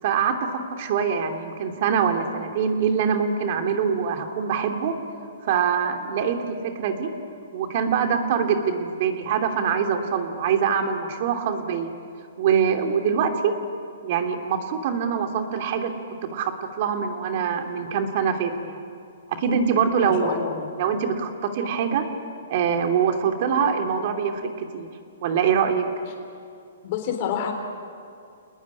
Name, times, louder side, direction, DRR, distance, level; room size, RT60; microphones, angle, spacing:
voice 1, 0.0-4.9 5.5-7.1 7.5-11.9 12.4-13.5 14.0-16.5 16.8-18.8 19.3-20.3 20.8-22.1 22.5-24.9 25.2-25.8, right 7 dB, 45° right, 5 dB, 3.0 m, -24 dB
voice 2, 20.0-20.7 26.8-27.5, left 8 dB, 45° left, 2 dB, 3.8 m, -28 dB
29.5 x 20.0 x 10.0 m, 2.4 s
hypercardioid pair, 150°, 0 cm